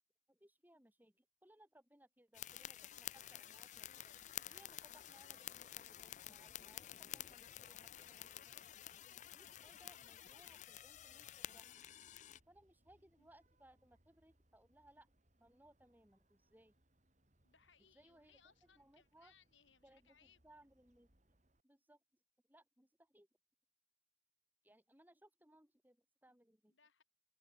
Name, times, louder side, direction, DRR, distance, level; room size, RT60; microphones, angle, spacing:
voice 1, 0.3-4.1 4.5-8.4 9.3-11.8 12.5-15.1 15.4-16.8 17.9-19.3 19.8-21.1 21.6-22.0 22.5-23.3 24.6-26.7, right 1 dB, 10° right, 5.8 m, -67 dB
sound 1, 2.3-12.4, left 12 dB, 40° left, 0.4 m, -51 dB
Vehicle horn car horn honking, 2.5-21.6, right 1 dB, 40° right, 4.8 m, -78 dB
voice 2, 13.0-13.3 17.4-20.4 26.7-27.0, left 7 dB, 85° left, 5.4 m, -70 dB
head